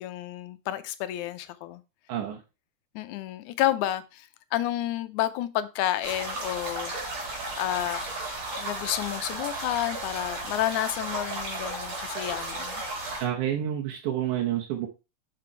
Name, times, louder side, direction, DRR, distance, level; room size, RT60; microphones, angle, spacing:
voice 1, 0.0-1.8 3.0-7.3 7.6-8.1 8.6-12.8, left 14 dB, 85° left, 2.1 m, -30 dB
sound 1, 6.0-13.3, right 2 dB, 60° right, 4.1 m, -34 dB
voice 2, 13.2-14.9, right 11 dB, 90° right, 2.6 m, -29 dB
6.9 x 5.3 x 4.5 m
omnidirectional pair, 3.4 m